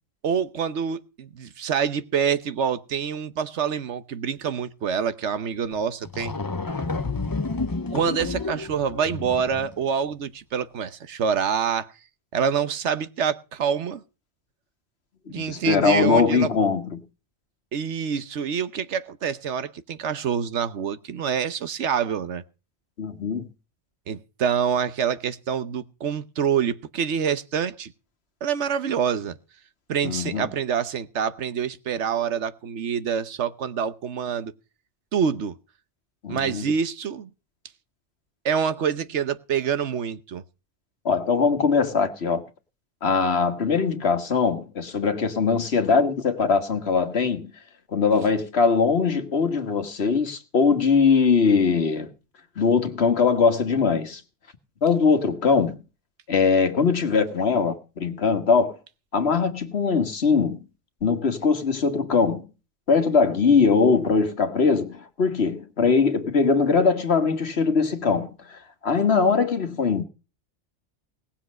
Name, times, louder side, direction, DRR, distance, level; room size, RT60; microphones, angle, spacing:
voice 1, 0.2-6.4 7.9-11.9 12.3-14.0 15.3-16.5 17.7-22.4 24.1-27.9 28.4-29.4 29.9-34.5 35.1-35.6 36.3-37.3 38.4-40.4, right 7 dB, 75° right, 1.2 m, -26 dB
sound 1, 5.7-5.8 6.0-9.8, left 3 dB, 25° left, 0.6 m, -30 dB
voice 2, 15.3-17.0 23.0-23.5 30.0-30.5 36.2-36.6 41.1-42.4 43.0-47.5 47.9-52.1 52.6-54.2 54.8-55.8 56.3-58.8 59.1-60.6 61.0-62.5 62.9-70.0, left 5 dB, 60° left, 1.7 m, -21 dB
18.5 x 7.3 x 6.3 m
omnidirectional pair, 1.2 m